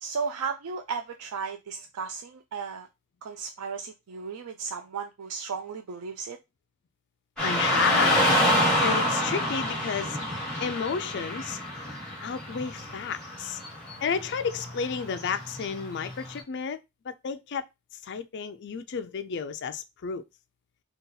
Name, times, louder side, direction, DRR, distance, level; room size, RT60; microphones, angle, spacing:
voice 1, 0.0-2.9 3.2-6.4, right 5 dB, 85° right, 0.4 m, -35 dB
voice 2, 7.4-8.3 8.8-10.2 10.6-11.6 12.2-13.6 14.0-16.8 17.0-17.6 18.0-20.2, left 6 dB, 50° left, 0.4 m, -31 dB
Car passing by / Traffic noise roadway noise, 7.4-16.4, left 1 dB, 5° left, 1.5 m, -28 dB
4.0 x 2.3 x 3.9 m
head